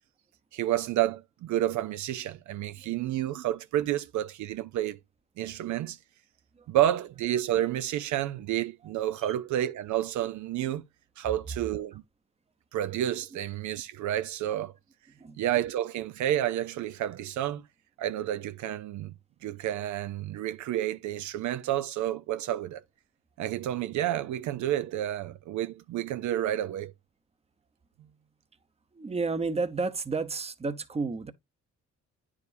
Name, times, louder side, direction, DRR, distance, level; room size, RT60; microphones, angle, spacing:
voice 1, 0.5-5.0 5.4-6.0 6.7-10.8 11.2-12.0 12.7-14.7 15.4-17.6 18.0-19.1 19.4-22.8 23.4-26.9, right 12 dB, 70° right, 0.5 m, -30 dB
voice 2, 28.9-31.3, right 4 dB, 20° right, 0.8 m, -31 dB
9.4 x 4.9 x 2.6 m
cardioid pair, 90°, 30 cm